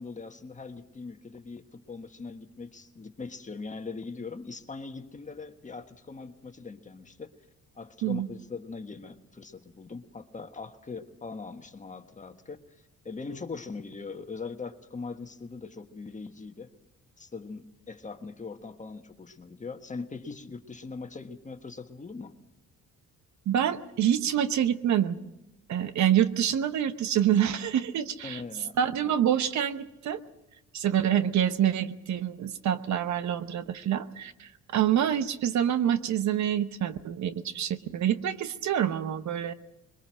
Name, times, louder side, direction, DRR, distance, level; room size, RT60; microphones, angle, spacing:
voice 1, 0.0-7.3 7.7-16.7 17.2-22.4 28.2-29.2, left 4 dB, 25° left, 7 dB, 1.4 m, -41 dB
voice 2, 23.5-25.2 25.7-28.4 28.8-30.2 30.7-39.5, right 10 dB, 70° right, 12 dB, 1.0 m, -26 dB
22.0 x 21.0 x 6.2 m, 0.93 s
cardioid pair, 90°, 30 cm